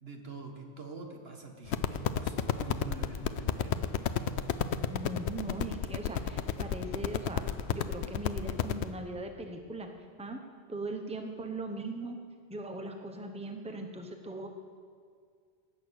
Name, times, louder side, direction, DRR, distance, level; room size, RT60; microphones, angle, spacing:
voice 1, 0.0-3.9, right 3 dB, 70° right, 3 dB, 1.8 m, -45 dB
sound 1, 1.7-8.9, left 9 dB, 90° left, 0.9 m, -31 dB
voice 2, 4.9-9.9 10.2-10.4 10.7-12.2 12.5-14.5, right 2 dB, 5° right, 4 dB, 1.0 m, -39 dB
18.0 x 8.7 x 6.4 m, 2.1 s
omnidirectional pair, 1.1 m